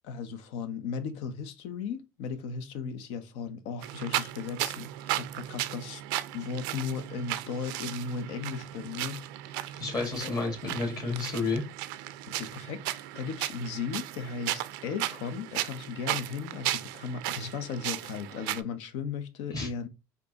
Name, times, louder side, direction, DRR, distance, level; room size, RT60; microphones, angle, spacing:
voice 1, 0.0-6.0 6.3-9.2 9.5-9.7 10.2-10.3 12.3-19.9, left 6 dB, 70° left, 0.7 m, -36 dB
sound 1, 3.8-18.6, right 15 dB, 80° right, 0.4 m, -35 dB
voice 2, 9.8-11.6 19.5-19.7, left 3 dB, 35° left, 2.0 m, -31 dB
4.4 x 2.6 x 2.8 m
supercardioid pair, 85°, 11 cm